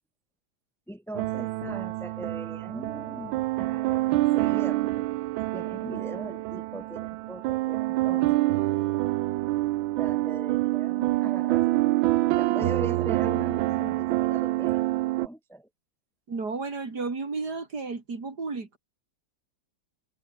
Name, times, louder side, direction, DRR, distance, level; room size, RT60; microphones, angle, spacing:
voice 1, 0.9-5.1 5.5-8.4 10.0-11.8 12.4-14.9 15.2-15.7, right 1 dB, ahead, 1.5 m, -40 dB
sound 1, 1.1-15.3, right 18 dB, 85° right, 1.4 m, -26 dB
voice 2, 16.3-18.8, right 4 dB, 55° right, 3.7 m, -33 dB
omnidirectional pair, 2.1 m